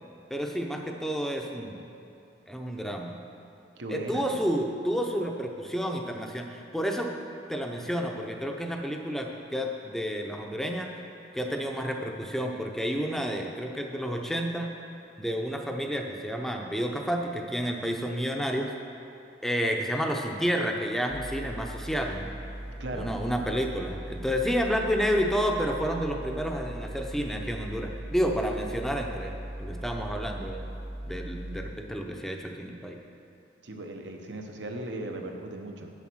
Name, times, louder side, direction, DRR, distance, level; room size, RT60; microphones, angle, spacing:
voice 1, 0.3-1.9 2.5-3.1 3.9-7.1 7.5-10.9 11.3-14.7 15.2-18.7 19.4-22.3 22.9-30.6 31.1-33.0, equal, ahead, 2 dB, 0.6 m, -30 dB
voice 2, 3.8-4.3 22.8-23.1 33.6-35.9, right 1 dB, 70° right, 3 dB, 0.9 m, -37 dB
sound 1, 21.1-31.7, right 1 dB, 20° right, 0.9 m, -39 dB
8.2 x 7.3 x 6.2 m, 2.9 s
head